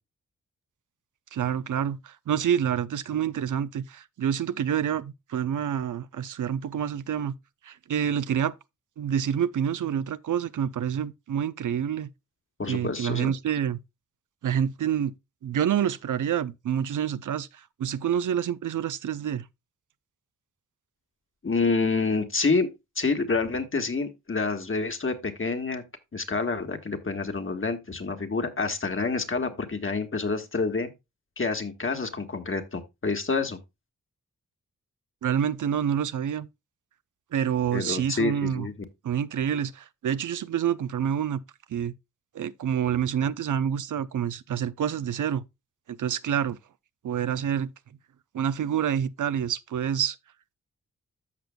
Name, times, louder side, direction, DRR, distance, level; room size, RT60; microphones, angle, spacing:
voice 1, 1.3-7.3 7.6-8.5 9.0-12.1 12.7-13.8 14.4-15.1 15.4-17.5 17.8-19.4 35.2-36.5 37.3-38.7 39.0-41.4 41.7-41.9 42.3-45.4 45.9-46.6 47.0-47.7 48.3-50.2, right 9 dB, 75° right, 0.6 m, -27 dB
voice 2, 12.6-13.3 21.4-25.8 26.1-30.9 31.4-33.6 37.7-38.7, left 4 dB, 40° left, 1.5 m, -28 dB
14.0 x 5.1 x 2.2 m
cardioid pair, 55°, 31 cm